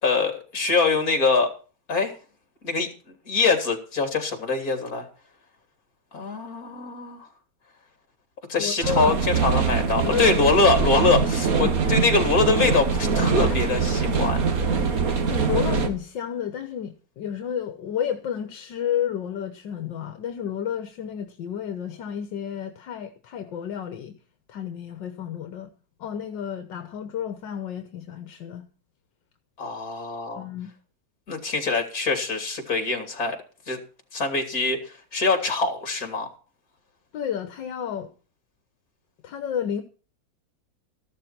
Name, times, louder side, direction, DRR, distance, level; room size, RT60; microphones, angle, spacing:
voice 1, 0.0-1.5 1.9-2.1 2.6-2.9 3.3-5.1 6.1-7.3 8.5-14.4 29.6-30.5 31.3-33.4 33.7-33.8 34.1-36.3, left 3 dB, 50° left, 3.5 m, -23 dB
voice 2, 8.6-9.2 10.0-10.4 11.0-11.3 11.6-11.8 13.4-13.6 15.3-24.2 24.5-25.7 26.0-28.7 30.4-30.7 37.1-38.1 39.2-39.8, left 9 dB, 75° left, 1.8 m, -31 dB
sound 1, 8.8-15.9, right 5 dB, 50° right, 1.9 m, -23 dB
14.0 x 12.5 x 4.4 m
omnidirectional pair, 2.0 m